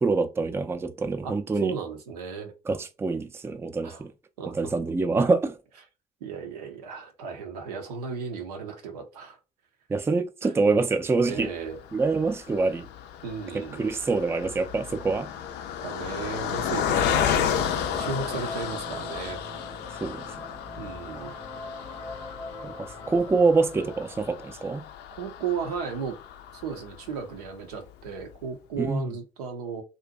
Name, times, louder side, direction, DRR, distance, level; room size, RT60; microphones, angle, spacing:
voice 1, 0.0-1.8 2.7-4.1 4.5-5.6 9.9-11.5 11.9-12.9 13.5-15.3 20.0-20.3 21.1-21.3 22.6-24.8 28.8-29.1, right 3 dB, 15° right, 0.4 m, -25 dB
voice 2, 1.2-2.5 3.8-4.0 4.4-4.7 6.2-9.4 10.4-10.5 11.2-11.8 13.2-13.8 15.8-17.7 18.0-19.4 20.8-21.3 25.2-26.2 26.6-29.8, right 5 dB, 85° right, 0.6 m, -35 dB
Car passing by, 11.7-27.2 27.7-27.8 28.1-28.3, left 8 dB, 60° left, 0.4 m, -32 dB
sound 1, 16.6-24.1, left 1 dB, 5° left, 0.8 m, -42 dB
2.5 x 2.1 x 2.5 m
hypercardioid pair, 55°, 19 cm